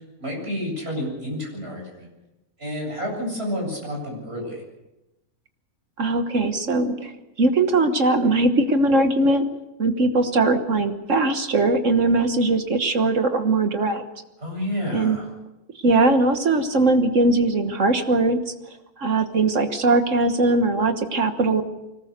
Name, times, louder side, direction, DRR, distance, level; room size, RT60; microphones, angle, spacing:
voice 1, 0.2-2.1 2.6-4.6 14.4-15.3, equal, 45° right, 0 dB, 8.4 m, -30 dB
voice 2, 6.0-7.1 7.4-9.5 9.8-14.0 14.9-15.2 15.8-18.4 19.0-21.6, right 2 dB, 60° right, 8 dB, 1.6 m, -20 dB
24.5 x 19.0 x 6.7 m, 0.97 s
omnidirectional pair, 1.5 m